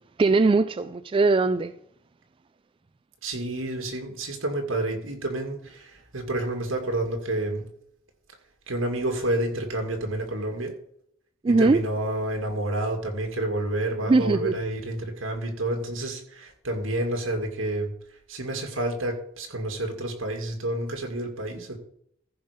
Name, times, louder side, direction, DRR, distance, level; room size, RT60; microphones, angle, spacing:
voice 1, 0.2-1.7 11.4-11.8 14.1-14.5, right 3 dB, 25° right, 0.3 m, -20 dB
voice 2, 3.2-7.7 8.7-10.7 11.5-17.9 18.3-21.8, right 1 dB, 75° right, 2.3 m, -29 dB
14.5 x 5.6 x 5.1 m
head